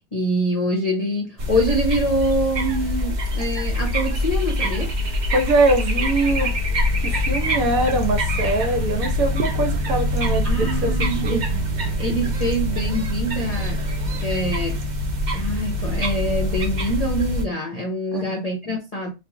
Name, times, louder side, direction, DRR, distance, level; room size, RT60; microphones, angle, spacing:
voice 1, 0.1-4.9 10.4-11.4 12.0-13.8 14.2-14.8 15.3-19.1, equal, 40° left, 0.5 m, -25 dB
sound 1, 1.4-17.4, left 1 dB, 45° right, 0.6 m, -24 dB
voice 2, 5.3-6.5 7.0-11.4 18.1-18.4, right 2 dB, 65° right, 1.3 m, -23 dB
3.0 x 2.5 x 3.6 m
omnidirectional pair, 1.6 m